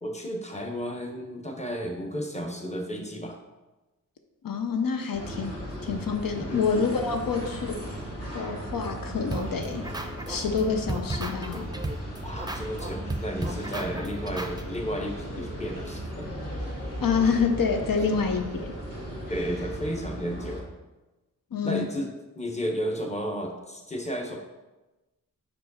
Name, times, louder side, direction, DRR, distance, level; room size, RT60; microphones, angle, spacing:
voice 1, 0.0-3.4 6.4-6.6 12.2-16.3 18.1-18.2 19.3-20.7 21.6-24.4, equal, 20° left, 1 dB, 1.0 m, -33 dB
voice 2, 4.4-7.9 8.3-9.8 10.3-11.7 17.0-18.7 21.5-21.9, left 5 dB, 85° left, 4 dB, 0.6 m, -27 dB
sound 1, 5.1-20.6, equal, 45° left, 1.9 m, -36 dB
sound 2, 9.3-10.6 10.9-14.6, right 2 dB, 10° right, 0.5 m, -34 dB
4.8 x 4.8 x 4.1 m, 1.1 s
wide cardioid pair, 50°, 33 cm